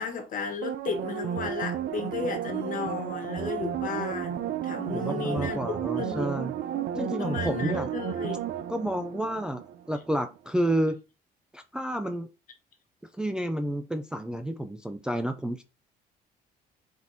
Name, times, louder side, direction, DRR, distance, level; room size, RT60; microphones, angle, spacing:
voice 1, 0.0-5.6 6.0-6.2 6.7-8.4, left 5 dB, 50° left, 1.3 m, -34 dB
sound 1, 0.6-10.0 10.4-10.5, right 9 dB, 65° right, 0.5 m, -33 dB
voice 2, 4.9-6.5 7.0-7.9 8.7-9.6 9.9-11.0 11.5-12.3 13.2-15.6, right 1 dB, 5° right, 0.4 m, -30 dB
4.5 x 4.3 x 2.7 m
cardioid pair, 110°, 17 cm